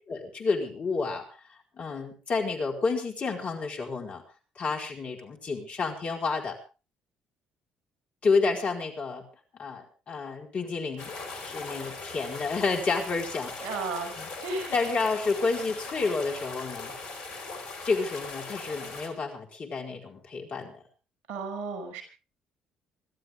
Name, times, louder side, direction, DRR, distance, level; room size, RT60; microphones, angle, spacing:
voice 1, 0.1-1.3 1.7-4.2 4.6-6.6 8.2-9.2 9.6-11.1 11.4-13.5 14.2-14.3 14.7-16.9 17.8-20.8, left 4 dB, 45° left, 2 dB, 4.7 m, -30 dB
sound 1, 11.0-19.1, left 3 dB, 65° left, 4.8 m, -40 dB
voice 2, 13.6-14.1 14.4-14.7 21.3-22.0, right 3 dB, 65° right, 7 dB, 5.9 m, -33 dB
26.5 x 13.0 x 3.7 m, 0.33 s
hypercardioid pair, 50°, 3 cm